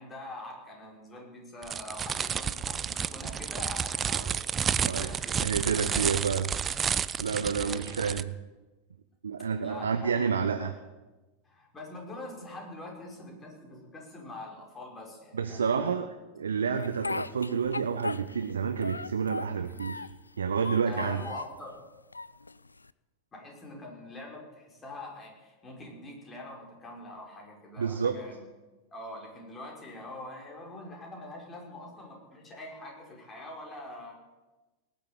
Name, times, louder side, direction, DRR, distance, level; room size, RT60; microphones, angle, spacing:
voice 1, 0.0-5.4 5.7-5.9 7.3-8.0 9.6-10.7 11.4-15.9 20.9-21.7 23.3-28.4 28.9-34.1, left 2 dB, 20° left, -1 dB, 5.6 m, -44 dB
sound 1, 1.6-8.2, right 7 dB, 25° right, 0.5 m, -31 dB
voice 2, 4.8-5.1 5.4-6.5 7.2-8.3 9.2-10.7 15.3-16.1 16.4-20.0 20.4-21.2 27.8-28.2, right 6 dB, 75° right, 8 dB, 0.9 m, -29 dB
Speech, 16.8-18.5 18.8-20.2 20.6-21.6 22.1-22.9, left 3 dB, 85° left, 0.4 m, -37 dB
18.5 x 8.0 x 8.9 m, 1.1 s
figure-of-eight pair, 90°, 0 cm